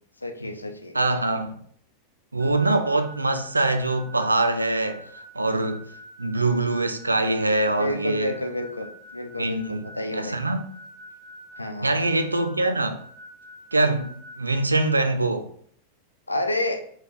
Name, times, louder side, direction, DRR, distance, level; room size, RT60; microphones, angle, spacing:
voice 1, 0.2-1.0 7.8-10.4 11.6-12.0 16.3-16.8, left 1 dB, 80° left, 0.4 m, -30 dB
voice 2, 0.9-1.6 2.3-5.9 6.2-8.3 9.4-9.8 10.1-10.7 11.8-13.0 13.7-14.1 14.4-15.5, right 2 dB, 80° right, 0.4 m, -23 dB
sound 1, 2.4-15.1, right 1 dB, 10° left, 1.2 m, -46 dB
4.8 x 2.3 x 4.0 m
figure-of-eight pair, 90°, 0 cm